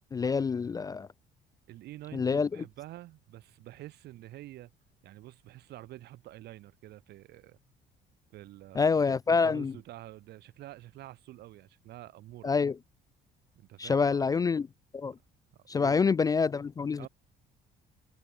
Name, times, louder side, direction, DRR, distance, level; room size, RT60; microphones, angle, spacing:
voice 1, 0.1-1.1 2.1-2.5 8.8-9.7 12.4-12.7 13.8-14.7 14.9-15.1 15.7-17.1, left 5 dB, 20° left, 0.3 m, -26 dB
voice 2, 1.7-4.7 5.0-7.6 8.3-12.5 13.6-14.4 15.5-16.2 17.0-17.1, right 15 dB, 75° right, 5.8 m, -48 dB
cardioid pair, 110°, 17 cm